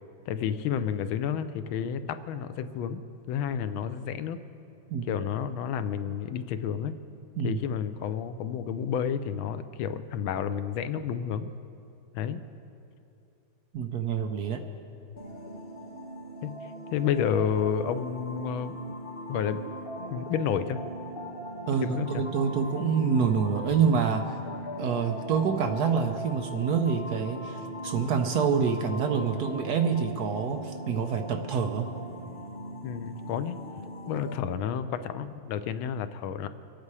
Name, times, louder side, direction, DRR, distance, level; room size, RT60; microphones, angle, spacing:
voice 1, 0.3-2.0 2.3-3.0 3.3-4.4 5.1-7.0 7.4-11.5 12.1-12.4 16.4-16.5 16.9-18.9 19.3-19.6 20.1-20.8 21.7-22.2 32.8-33.6 34.1-36.5, left 8 dB, 90° left, 11 dB, 1.5 m, -30 dB
voice 2, 13.7-14.6 21.7-24.4 24.8-31.9, right 6 dB, 65° right, 5 dB, 1.1 m, -27 dB
sound 1, 15.2-34.4, equal, 30° left, 1.5 m, -39 dB
24.0 x 8.6 x 4.7 m, 2.6 s
omnidirectional pair, 2.1 m